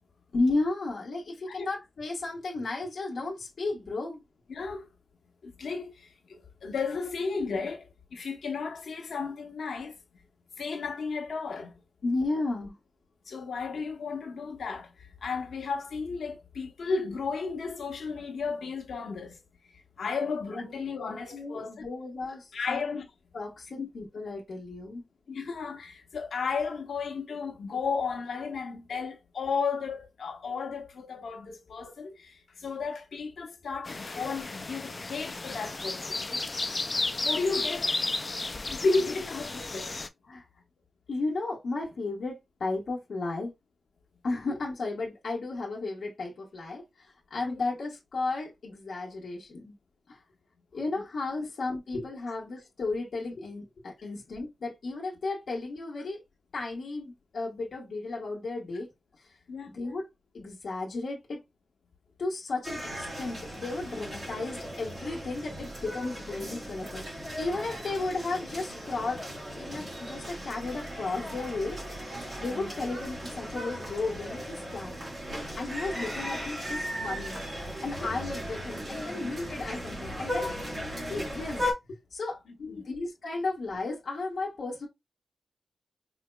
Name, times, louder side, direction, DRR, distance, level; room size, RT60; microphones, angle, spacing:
voice 1, 0.3-4.2 12.0-12.7 21.0-22.8 23.3-25.0 40.2-40.4 41.1-43.5 44.2-46.8 47.3-49.7 50.1-50.2 50.7-56.2 56.5-58.9 59.7-60.1 60.3-61.4 62.2-67.0 67.4-69.2 69.6-71.8 72.4-74.9 75.5-77.4 77.8-80.6 81.1-81.6 82.1-82.4 82.7-84.9, left 3 dB, 60° left, 1.3 m, -34 dB
voice 2, 4.5-4.9 5.4-9.9 10.6-11.7 13.3-19.4 20.0-21.7 22.5-23.1 23.8-23.9 25.3-36.4 37.2-38.0 38.7-39.9 47.4-47.6 59.5-59.7 72.5-72.7 82.5-83.0, left 4 dB, 90° left, 0.9 m, -33 dB
sound 1, 33.9-40.1, left 3 dB, 25° left, 0.4 m, -33 dB
sound 2, 62.6-81.7, equal, 30° right, 2.0 m, -37 dB
5.0 x 2.9 x 2.2 m
wide cardioid pair, 165°, 0 cm